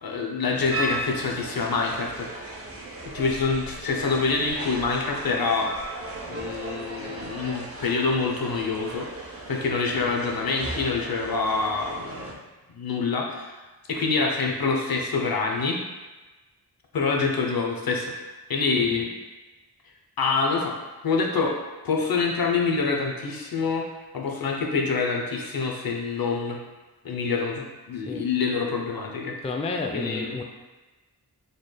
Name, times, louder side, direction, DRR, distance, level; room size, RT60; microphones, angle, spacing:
voice 1, 0.0-2.5 3.1-5.7 6.3-12.3 12.8-13.6 13.9-15.8 16.9-18.1 18.5-19.1 20.2-20.8 21.0-21.5 21.8-23.9 24.1-26.6 27.0-29.4 29.9-30.3, left 4 dB, 65° left, 1 dB, 0.7 m, -26 dB
sound 1, 0.5-12.3, right 2 dB, 35° right, 0.6 m, -36 dB
voice 2, 29.4-30.4, left 3 dB, 15° left, 2 dB, 0.3 m, -31 dB
3.9 x 3.2 x 2.2 m, 1.2 s
cardioid pair, 45°, 38 cm